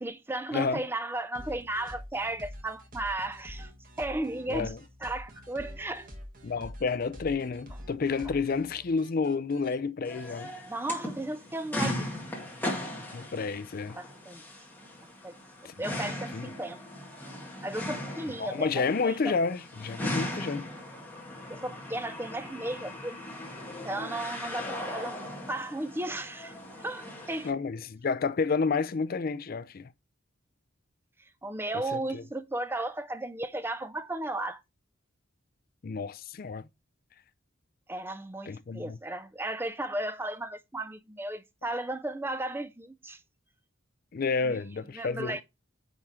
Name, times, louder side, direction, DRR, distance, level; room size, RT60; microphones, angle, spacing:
voice 1, 0.0-3.7 4.0-4.7 5.0-6.1 10.6-12.1 14.0-14.4 15.2-15.4 15.8-16.8 17.6-19.3 21.5-23.2 23.8-25.2 25.5-27.5 31.4-34.6 37.9-43.2 44.4-44.6 44.9-45.4, right 2 dB, 10° right, 0.5 m, -35 dB
voice 2, 0.5-0.8 4.5-4.8 6.4-10.5 13.1-14.0 15.6-15.7 16.3-16.5 18.4-20.7 27.4-29.9 31.9-32.2 35.8-36.7 38.5-39.0 44.1-45.4, left 4 dB, 45° left, 0.4 m, -30 dB
sound 1, 1.3-9.8, equal, 45° right, 1.6 m, -46 dB
sound 2, 10.0-27.5, left 1 dB, 10° left, 1.8 m, -38 dB
9.2 x 3.6 x 4.2 m
head